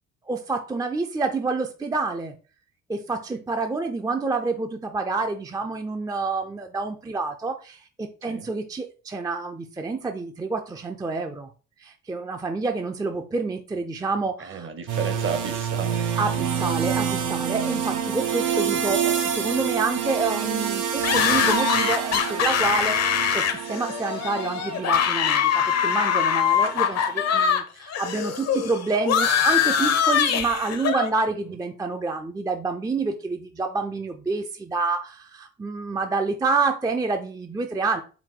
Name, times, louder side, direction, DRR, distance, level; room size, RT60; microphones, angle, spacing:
voice 1, 0.3-2.3 2.9-11.5 11.8-14.7 16.2-38.0, right 3 dB, 15° right, 0.4 m, -28 dB
voice 2, 14.4-16.2, right 6 dB, 40° right, 0.8 m, -32 dB
sound 1, 14.9-27.4, right 8 dB, 80° right, 0.8 m, -28 dB
sound 2, 21.0-27.6 27.9-31.1, left 8 dB, 60° left, 0.7 m, -23 dB
4.7 x 2.2 x 3.7 m
cardioid pair, 90°, 30 cm